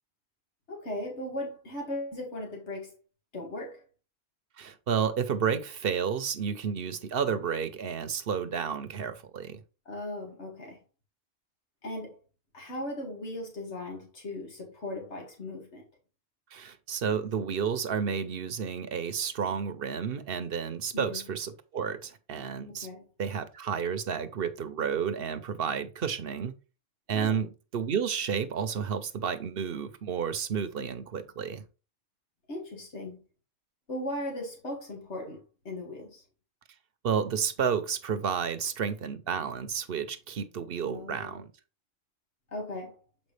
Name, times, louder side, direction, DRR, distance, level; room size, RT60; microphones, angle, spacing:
voice 1, 0.7-3.0 3.3-3.8 9.9-10.8 11.8-12.2 12.5-15.8 20.9-21.2 22.7-23.1 27.1-27.4 32.5-33.2 33.9-36.2 40.8-41.4 42.5-43.0, left 1 dB, 80° left, 2.3 m, -38 dB
voice 2, 4.6-9.6 16.5-22.9 23.2-26.5 27.1-31.6 37.0-41.5, right 7 dB, 60° right, 0.9 m, -31 dB
7.5 x 5.3 x 3.2 m
omnidirectional pair, 1.1 m